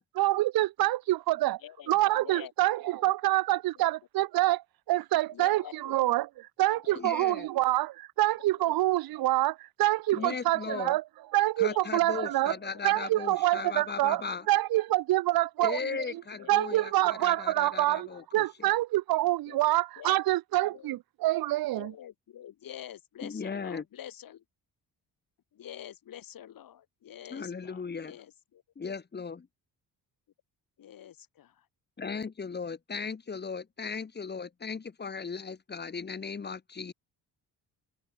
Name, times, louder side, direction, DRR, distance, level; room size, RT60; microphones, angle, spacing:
voice 1, 0.2-1.6 1.9-11.0 11.3-12.6 12.8-16.2 16.5-21.9, right 16 dB, 70° right, 0.6 m, -26 dB
voice 2, 1.6-2.5 2.8-3.1 3.8-3.9 5.3-5.9 6.8-7.0 7.4-7.5 8.6-8.7 10.1-10.3 11.7-11.8 12.1-12.4 12.7-12.9 13.5-14.4 16.3-17.8 18.1-18.3 19.5-19.7 20.0-20.2 20.7-21.0 21.7-24.4 25.5-28.6 30.8-31.7, left 10 dB, 65° left, 6.5 m, -48 dB
voice 3, 6.9-7.5 10.1-11.0 11.6-14.5 15.6-18.4 23.2-23.8 27.3-28.2 28.8-29.5 32.0-36.9, left 5 dB, 25° left, 2.9 m, -37 dB
cardioid pair, 150°, 37 cm